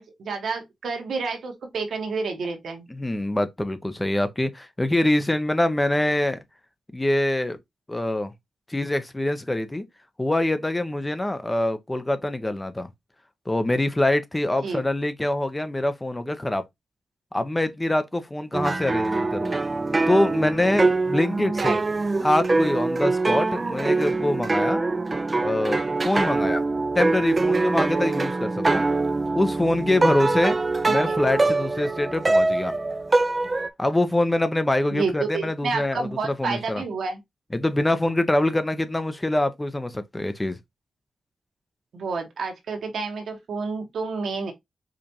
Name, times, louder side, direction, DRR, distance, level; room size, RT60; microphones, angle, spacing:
voice 1, 0.0-2.9 14.6-14.8 21.6-21.8 30.8-31.2 34.9-37.2 41.9-44.5, right 4 dB, 80° right, 1.1 m, -29 dB
voice 2, 2.9-6.4 6.9-7.6 7.9-8.3 8.7-9.8 10.2-12.9 13.5-16.6 17.3-19.5 20.1-21.8 22.2-24.8 25.4-26.6 26.9-28.8 29.3-30.6 30.8-32.7 33.8-36.8 37.5-40.6, left 1 dB, 15° left, 0.6 m, -24 dB
sound 1, 18.5-33.7, right 3 dB, 30° right, 0.3 m, -23 dB
4.9 x 2.4 x 2.8 m
cardioid pair, 75°, 0 cm